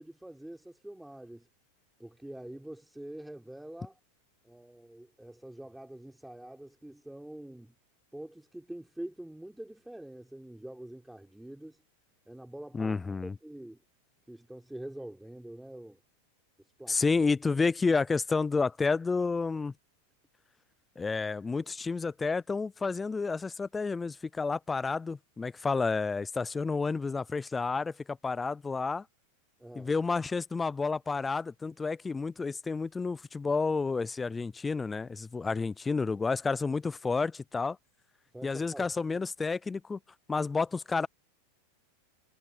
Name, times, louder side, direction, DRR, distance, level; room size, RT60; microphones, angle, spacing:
voice 1, 0.0-1.5 2.0-4.0 4.4-7.7 8.1-11.8 12.2-13.8 14.3-16.0 16.8-17.0 29.6-29.9 38.3-38.9, right 1 dB, 5° right, 4.9 m, -45 dB
voice 2, 12.7-13.4 16.9-19.7 21.0-29.0 29.8-37.8 38.4-40.0 40.3-41.1, left 4 dB, 10° left, 0.4 m, -30 dB
supercardioid pair, 135°, 0 cm